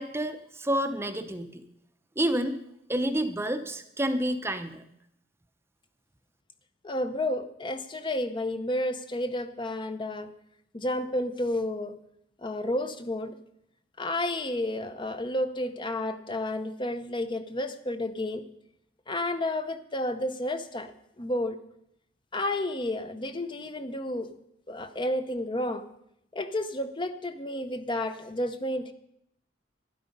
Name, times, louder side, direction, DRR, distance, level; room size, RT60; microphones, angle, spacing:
voice 1, 0.0-1.6 2.2-2.6 2.9-4.8, right 1 dB, 15° right, 9 dB, 0.7 m, -29 dB
voice 2, 6.8-10.3 10.7-12.0 12.4-13.4 14.0-18.4 19.1-20.9 21.2-21.6 22.3-24.3 24.7-25.8 26.3-28.9, left 1 dB, 25° left, 10 dB, 0.7 m, -31 dB
12.0 x 11.0 x 5.3 m, 0.76 s
head